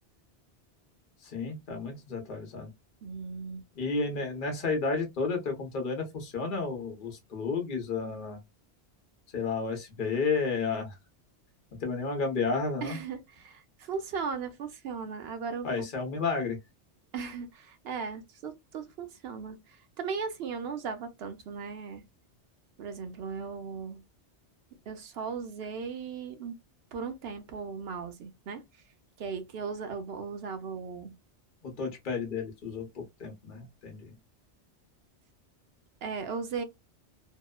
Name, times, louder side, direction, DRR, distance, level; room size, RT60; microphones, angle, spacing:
voice 1, 1.2-2.7 3.8-8.4 9.3-10.9 11.8-13.0 15.6-16.6 31.6-34.1, left 4 dB, 50° left, 0.9 m, -32 dB
voice 2, 3.0-3.6 12.8-15.9 17.1-22.0 22.8-24.0 24.9-26.5 26.9-28.6 29.2-31.1 36.0-36.6, right 5 dB, 65° right, 0.8 m, -37 dB
2.8 x 2.0 x 2.2 m
omnidirectional pair, 1.2 m